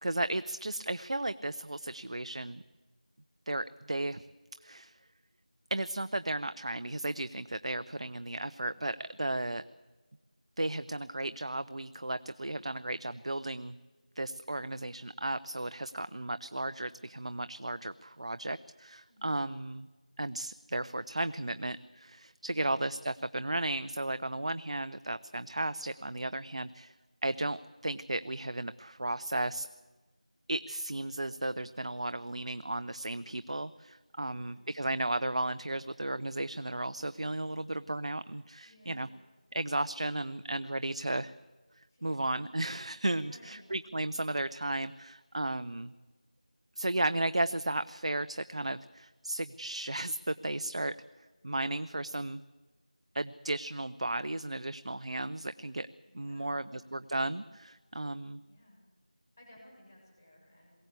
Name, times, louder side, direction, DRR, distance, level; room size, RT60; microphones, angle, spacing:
voice 1, 0.0-2.6 3.5-4.2 4.6-4.9 5.7-9.6 10.6-13.7 14.2-19.9 20.2-26.9 27.2-29.7 30.5-39.1 39.5-41.3 42.0-45.9 46.8-50.9 51.4-52.4 53.1-55.9 56.1-58.4, right 1 dB, 55° right, 13 dB, 0.6 m, -34 dB
voice 2, 34.3-34.7 38.6-39.2 41.9-42.2 43.2-43.8 56.0-56.7 58.5-58.8 59.4-60.8, left 1 dB, 25° left, -3 dB, 7.1 m, -58 dB
22.0 x 17.0 x 8.3 m, 1.3 s
figure-of-eight pair, 175°, 4 cm